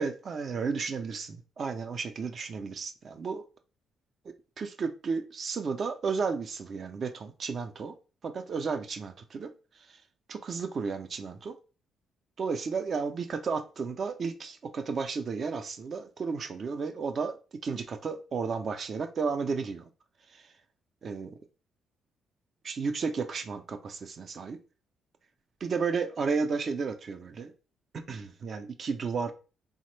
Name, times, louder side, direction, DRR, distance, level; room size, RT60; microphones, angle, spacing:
voice 1, 0.0-3.4 4.2-7.9 8.2-9.5 9.9-10.0 10.3-11.6 12.4-17.4 17.6-19.9 20.3-20.5 21.0-21.4 22.6-24.6 25.6-27.5 28.1-29.3, right 5 dB, 50° right, 0.4 m, -33 dB
3.2 x 2.1 x 3.0 m
cardioid pair, 90°, 0 cm